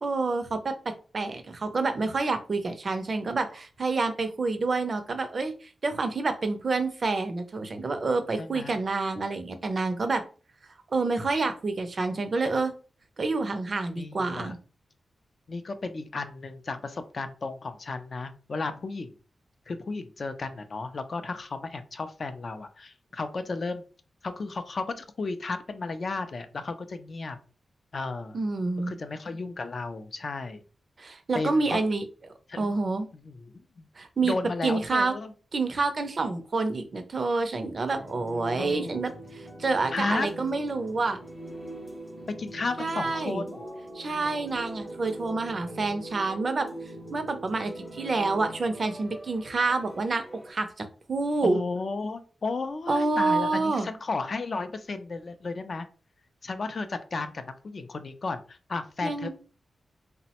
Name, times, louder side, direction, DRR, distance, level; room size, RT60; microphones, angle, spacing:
voice 1, 0.0-10.2 10.9-12.7 13.2-14.6 28.3-28.9 31.0-32.0 32.6-33.1 34.0-34.3 34.6-35.1 35.5-41.2 42.8-43.4 43.9-46.7 47.1-51.6 52.9-53.9 59.0-59.3, right 3 dB, 45° right, 8 dB, 0.4 m, -28 dB
voice 2, 8.4-8.8 13.9-14.5 15.5-19.1 19.7-23.8 24.2-27.4 27.9-28.4 28.8-30.6 31.3-31.8 32.5-32.7 33.1-33.9 34.2-35.3 38.6-39.0 39.9-40.3 42.3-43.6 51.4-55.9 56.4-59.3, left 3 dB, 50° left, 9 dB, 0.3 m, -34 dB
sound 1, 37.9-50.5, right 1 dB, 20° left, 0.8 m, -42 dB
3.2 x 2.0 x 2.8 m, 0.37 s
wide cardioid pair, 115°, 0 cm